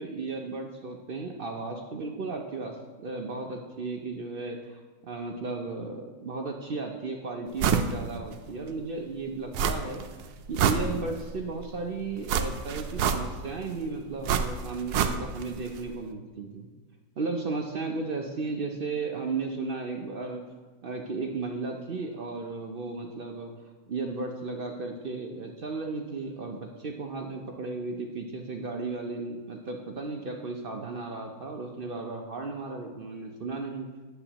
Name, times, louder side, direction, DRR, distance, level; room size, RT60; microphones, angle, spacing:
voice 1, 0.0-2.8 3.0-10.2 10.5-16.7 17.2-20.4 20.8-23.5 23.9-33.9, right 3 dB, 65° right, 2 dB, 0.5 m, -35 dB
sound 1, 7.6-7.9 8.3-8.4 9.5-10.1 10.4-11.3 12.3-13.5 14.2-15.5 15.8-15.9, right 7 dB, 85° right, 1.1 m, -26 dB
10.0 x 7.9 x 2.9 m, 1.3 s
omnidirectional pair, 1.7 m